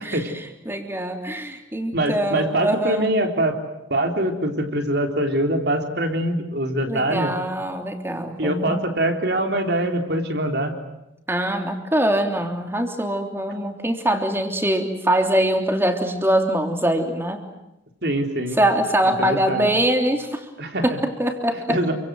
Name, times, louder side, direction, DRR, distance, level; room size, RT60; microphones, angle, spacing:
voice 1, 0.0-0.3 0.6-3.1 6.9-8.8 11.3-17.4 18.5-20.5 20.8-21.8, right 1 dB, 10° right, 5 dB, 3.1 m, -23 dB
voice 2, 1.9-3.6 3.9-7.3 8.4-10.7 18.0-18.6 19.0-19.7 20.6-20.8 21.7-21.9, right 1 dB, 60° right, 5 dB, 3.8 m, -23 dB
29.0 x 25.0 x 7.8 m, 0.88 s
head